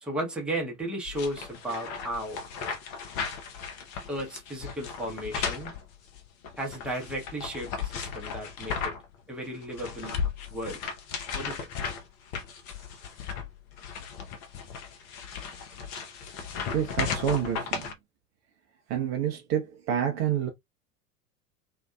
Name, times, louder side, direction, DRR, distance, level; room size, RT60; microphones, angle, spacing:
voice 1, 0.0-2.4 4.1-5.7 6.6-8.9 9.3-10.2 10.5-10.8 11.3-11.7, right 1 dB, ahead, 0.8 m, -34 dB
sound 1, 1.1-9.1 9.5-17.9, left 6 dB, 40° left, 0.7 m, -36 dB
voice 2, 16.7-17.9 18.9-20.5, right 9 dB, 35° right, 0.6 m, -28 dB
2.6 x 2.2 x 2.3 m
figure-of-eight pair, 85°, 46 cm